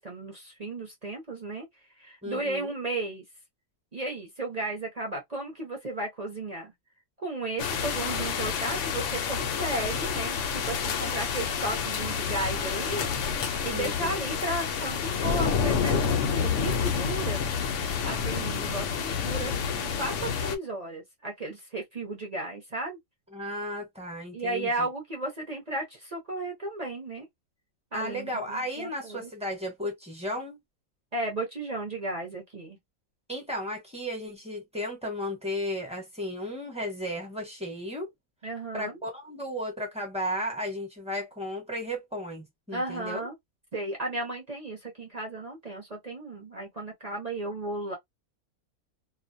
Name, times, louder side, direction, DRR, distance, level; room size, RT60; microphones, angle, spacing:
voice 1, 0.0-1.7 2.0-3.2 3.9-6.7 7.2-13.1 13.4-17.5 17.8-23.0 24.3-27.3 27.9-29.3 31.1-32.8 38.4-39.0 42.7-43.4 43.7-47.9, right 2 dB, 40° right, 0.6 m, -34 dB
voice 2, 2.2-2.7 13.7-14.2 23.3-24.9 27.9-30.6 33.3-38.1 38.7-43.3, equal, 5° right, 0.7 m, -34 dB
sound 1, 7.6-20.6, left 6 dB, 65° left, 0.8 m, -29 dB
2.4 x 2.0 x 2.6 m
omnidirectional pair, 1.6 m